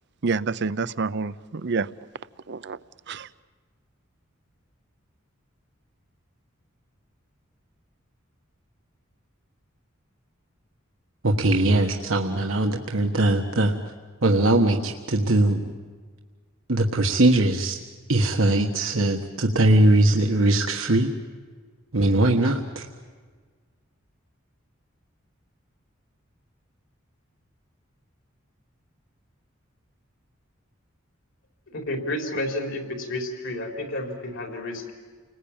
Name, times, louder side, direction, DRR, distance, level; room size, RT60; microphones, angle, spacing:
voice 1, 0.2-1.9 2.5-2.8 3.1-3.3, right 4 dB, 60° right, 16 dB, 0.7 m, -27 dB
voice 2, 11.2-13.7 14.2-15.7 16.7-17.8 18.1-21.1 21.9-22.9, right 2 dB, 80° right, 2 dB, 1.4 m, -21 dB
voice 3, 31.7-34.8, left 1 dB, 65° left, 3 dB, 4.2 m, -31 dB
30.0 x 20.5 x 8.8 m, 1.5 s
head